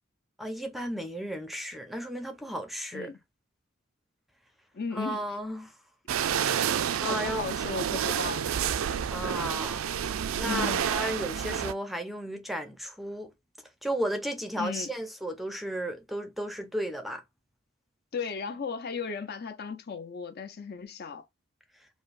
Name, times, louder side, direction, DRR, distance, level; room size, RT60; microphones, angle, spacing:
voice 1, 0.4-3.1 4.9-5.7 7.0-7.8 9.1-9.8 10.4-13.3 13.8-17.2, equal, ahead, 0.5 m, -34 dB
voice 2, 4.7-5.2 7.0-8.5 10.4-10.9 14.6-14.9 18.1-21.2, left 5 dB, 50° left, 0.6 m, -35 dB
sound 1, 6.1-11.7, right 8 dB, 75° right, 0.4 m, -29 dB
4.9 x 2.1 x 2.4 m
head